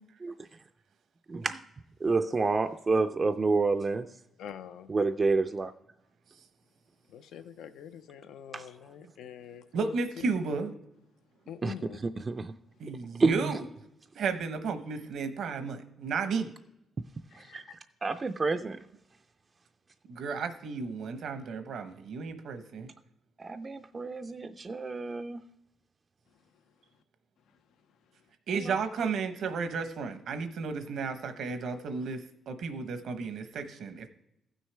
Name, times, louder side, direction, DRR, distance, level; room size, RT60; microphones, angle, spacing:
voice 1, 1.3-1.6 2.0-4.1 4.9-5.7 8.5-8.6 11.6-11.7 12.3-12.5 13.2-13.6 17.3-17.6 18.0-18.8 23.4-25.4 28.5-28.8 29.0-29.1, right 3 dB, 30° right, 0.4 m, -29 dB
voice 2, 4.4-4.9 7.1-10.3 11.5-12.0 17.3-17.8 26.3-27.0 27.5-27.6 27.9-28.3, left 9 dB, 90° left, 0.5 m, -46 dB
voice 3, 9.7-10.7 12.8-13.6 14.1-16.5 20.1-22.9 28.5-34.1, right 5 dB, 75° right, 0.9 m, -33 dB
15.0 x 6.4 x 3.3 m
cardioid pair, 100°, 0 cm